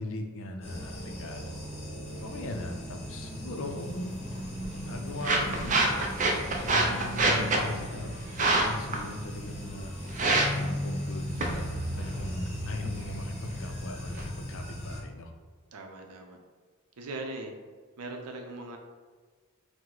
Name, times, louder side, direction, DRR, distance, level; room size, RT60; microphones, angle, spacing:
voice 1, 0.0-1.6 2.2-4.1 4.8-5.8 6.6-10.3 10.5-15.3, left 1 dB, 60° left, 4 dB, 0.5 m, -39 dB
sound 1, 0.6-15.0, left 1 dB, 30° left, 0.9 m, -38 dB
sound 2, 4.3-14.2, right 2 dB, 35° right, 0.4 m, -30 dB
voice 2, 15.7-16.4 17.0-17.5 18.0-18.8, right 2 dB, 90° right, 3 dB, 0.5 m, -39 dB
4.6 x 2.1 x 3.8 m, 1.5 s
head